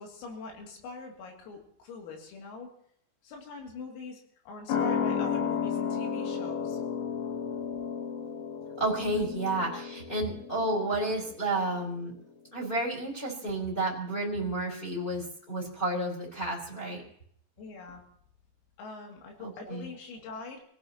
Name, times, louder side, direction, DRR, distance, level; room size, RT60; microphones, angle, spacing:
voice 1, 0.0-2.7 3.2-6.8 17.6-18.0 18.8-20.6, left 4 dB, 85° left, 1 dB, 5.4 m, -43 dB
sound 1, 4.7-11.8 12.1-12.2, left 7 dB, 60° left, 4.3 m, -33 dB
voice 2, 8.8-12.1 12.5-17.0 19.4-19.9, right 2 dB, 10° left, -2 dB, 4.5 m, -31 dB
28.5 x 16.5 x 3.0 m, 0.65 s
omnidirectional pair, 5.9 m